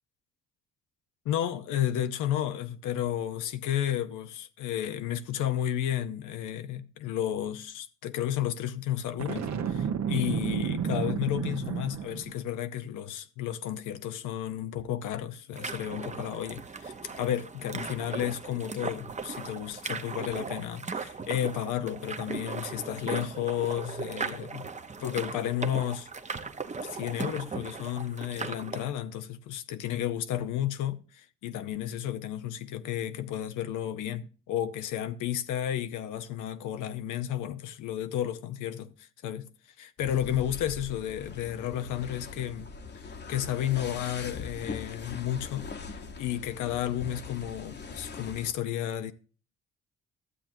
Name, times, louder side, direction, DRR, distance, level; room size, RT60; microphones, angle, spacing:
voice 1, 1.2-24.6 25.0-26.5 26.8-39.5 39.8-49.1, left 11 dB, 85° left, 0.7 m, -32 dB
Boom, 9.2-12.4, right 7 dB, 60° right, 1.1 m, -31 dB
sound 1, 15.5-28.9, right 4 dB, 25° right, 0.7 m, -38 dB
sound 2, 40.0-48.5, left 4 dB, 35° left, 1.0 m, -42 dB
12.5 x 7.3 x 2.6 m
cardioid pair, 90°, 30 cm